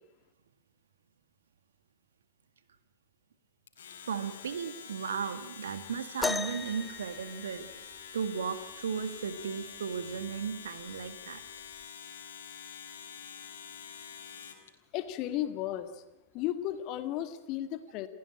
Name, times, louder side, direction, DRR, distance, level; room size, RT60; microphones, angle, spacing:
Domestic sounds home sounds, 3.7-14.7, left 7 dB, 65° left, 4.0 m, -47 dB
voice 1, 4.1-7.7 8.1-11.4, right 6 dB, 65° right, 12 dB, 1.9 m, -35 dB
sound 1, 6.2-8.1 9.8-9.9 10.7-10.9 11.8-11.9, left 3 dB, 10° left, 0.8 m, -36 dB
voice 2, 14.9-16.0 16.3-18.1, left 12 dB, 40° left, 10 dB, 2.1 m, -34 dB
30.0 x 15.5 x 8.8 m, 0.90 s
figure-of-eight pair, 90°, 0 cm